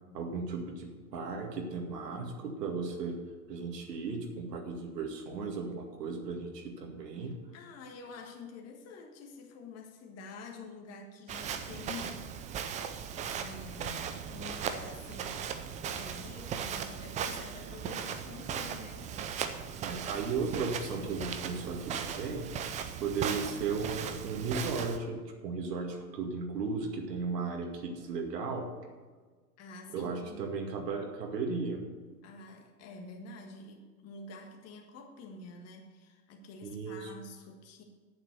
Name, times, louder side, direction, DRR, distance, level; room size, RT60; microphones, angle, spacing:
voice 1, 0.1-3.2 3.5-7.3 19.8-28.7 29.9-31.8 36.6-37.1, right 4 dB, 80° right, 2 dB, 2.2 m, -36 dB
voice 2, 7.2-12.5 13.4-15.4 15.8-19.1 29.6-30.4 32.2-37.8, left 3 dB, 30° left, 2 dB, 1.6 m, -48 dB
Walk footsteps, 11.3-25.0, right 7 dB, 15° right, 0.4 m, -38 dB
8.8 x 7.5 x 6.8 m, 1.4 s
hypercardioid pair, 110°, 48 cm